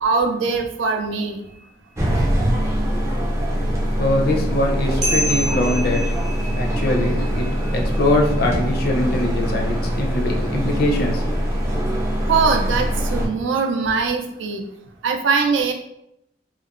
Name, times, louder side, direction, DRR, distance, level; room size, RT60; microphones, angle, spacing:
voice 1, 0.0-1.4 12.3-14.7 15.0-15.7, right 4 dB, 85° right, 3 dB, 0.4 m, -21 dB
sound 1, 1.4-1.7 5.0-10.8, equal, 40° right, 0.8 m, -31 dB
sound 2, 2.0-13.3, equal, 15° right, 0.3 m, -23 dB
voice 2, 4.0-6.1 6.6-7.5 7.7-11.2, left 1 dB, 55° left, 1 dB, 0.4 m, -22 dB
2.8 x 2.0 x 2.4 m, 0.80 s
head